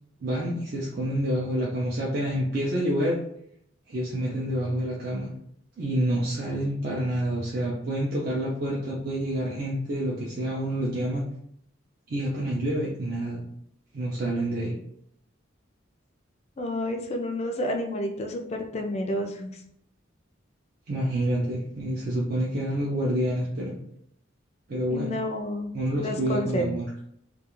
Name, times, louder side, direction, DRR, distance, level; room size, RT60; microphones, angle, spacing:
voice 1, 0.2-3.2 3.9-5.3 5.8-11.2 12.1-13.4 13.9-14.8 20.9-23.7 24.7-25.1 25.7-26.8, right 1 dB, 45° right, -4 dB, 0.4 m, -28 dB
voice 2, 16.6-19.6 24.9-26.7, left 1 dB, 35° left, 3 dB, 0.3 m, -30 dB
2.3 x 2.3 x 2.9 m, 0.71 s
head